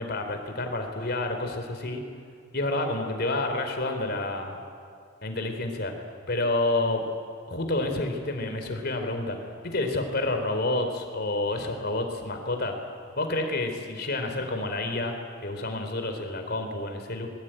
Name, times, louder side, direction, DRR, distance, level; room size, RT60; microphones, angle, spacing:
voice 1, 0.0-2.0 2.5-4.6 5.2-5.9 6.3-7.1 7.5-9.4 9.6-12.7 13.2-15.2 15.4-17.3, left 2 dB, 55° left, 5 dB, 3.6 m, -29 dB
27.0 x 22.0 x 9.0 m, 2.3 s
head